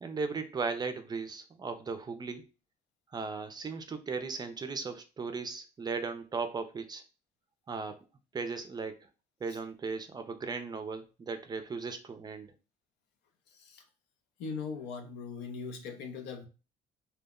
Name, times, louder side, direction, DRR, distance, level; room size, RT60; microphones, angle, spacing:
voice 1, 0.0-2.5 3.1-7.0 7.7-8.0 8.3-9.1 9.4-12.5, right 4 dB, 25° right, 0.4 m, -37 dB
voice 2, 14.4-16.5, left 5 dB, 90° left, 0.6 m, -39 dB
2.2 x 2.0 x 3.5 m
cardioid pair, 110°, 17 cm